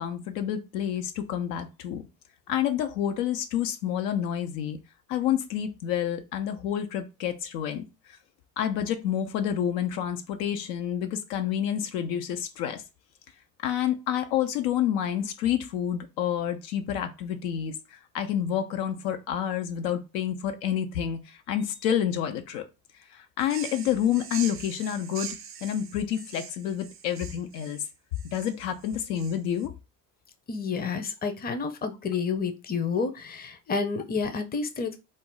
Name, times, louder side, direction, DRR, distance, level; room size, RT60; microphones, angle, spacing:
voice 1, 0.0-2.0 2.5-4.8 5.1-7.8 8.6-12.8 13.6-22.7 23.1-27.8 28.3-29.7, left 10 dB, 85° left, 0.5 m, -29 dB
sound 1, 23.4-29.7, right 8 dB, 30° right, 0.4 m, -42 dB
voice 2, 30.5-34.9, left 5 dB, 20° left, 0.5 m, -30 dB
2.5 x 2.0 x 3.7 m
hypercardioid pair, 50°, 47 cm